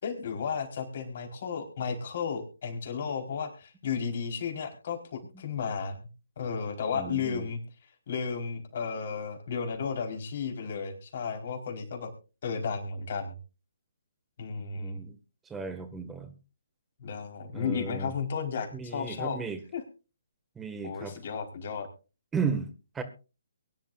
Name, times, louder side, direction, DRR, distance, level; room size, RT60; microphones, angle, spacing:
voice 1, 0.0-6.1 6.4-7.6 8.1-12.1 12.4-13.4 14.4-15.0 17.0-19.4 19.7-19.8 20.8-21.9, left 6 dB, 50° left, 2 dB, 4.7 m, -33 dB
voice 2, 6.9-7.5 14.7-15.2 15.5-16.3 17.5-18.1 18.7-19.6 20.6-21.2 22.3-23.0, right 5 dB, 10° right, 8 dB, 1.9 m, -35 dB
23.5 x 11.0 x 2.6 m, 0.33 s
figure-of-eight pair, 145°, 0 cm